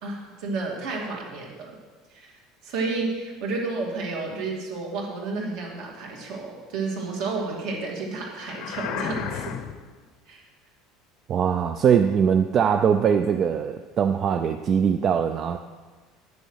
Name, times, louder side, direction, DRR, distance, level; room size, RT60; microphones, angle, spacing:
voice 1, 0.0-1.7 2.1-9.5 10.3-10.5, right 3 dB, 55° right, 0 dB, 2.5 m, -31 dB
sound 1, 8.4-10.0, left 9 dB, 50° left, 0.6 m, -33 dB
voice 2, 11.3-15.6, right 7 dB, 30° right, 8 dB, 0.3 m, -21 dB
10.5 x 6.9 x 6.3 m, 1.4 s
cardioid pair, 175°, 0 cm